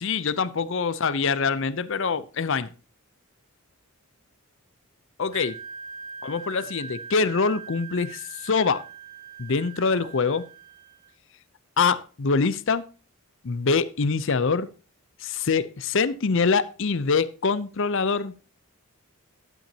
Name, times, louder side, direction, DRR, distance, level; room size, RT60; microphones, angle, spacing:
voice 1, 0.0-2.7 5.2-5.6 6.2-8.8 9.4-10.5 11.8-12.8 13.4-14.7 15.2-18.3, left 5 dB, 60° left, 0.6 m, -24 dB
Wind instrument woodwind instrument, 5.3-11.1, right 6 dB, 40° right, 1.9 m, -42 dB
11.5 x 9.0 x 2.8 m
head